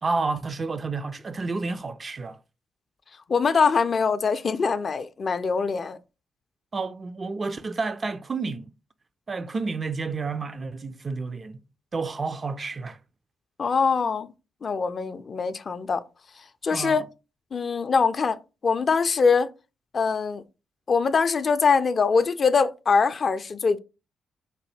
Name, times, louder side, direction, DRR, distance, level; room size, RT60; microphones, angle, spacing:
voice 1, 0.0-2.4 6.7-8.7 9.3-11.6 11.9-13.0 16.7-17.0, right 4 dB, 40° right, 0.4 m, -30 dB
voice 2, 3.3-6.0 13.6-14.3 14.6-16.0 16.6-17.0 17.5-19.5 19.9-20.4 20.9-23.8, left 5 dB, 50° left, 0.3 m, -23 dB
4.1 x 2.2 x 3.2 m
hypercardioid pair, 40°, 0 cm